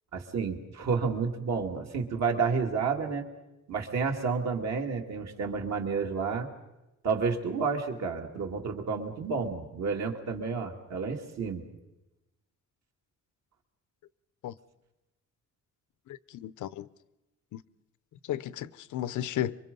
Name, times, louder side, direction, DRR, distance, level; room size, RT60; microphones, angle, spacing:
voice 1, 0.1-3.2 3.7-6.5 7.0-11.6, right 5 dB, 60° right, 2.6 m, -30 dB
voice 2, 16.3-16.9 17.5-17.6 18.3-19.6, left 12 dB, 75° left, 0.7 m, -33 dB
26.5 x 24.0 x 5.4 m
cardioid pair, 145°, 30 cm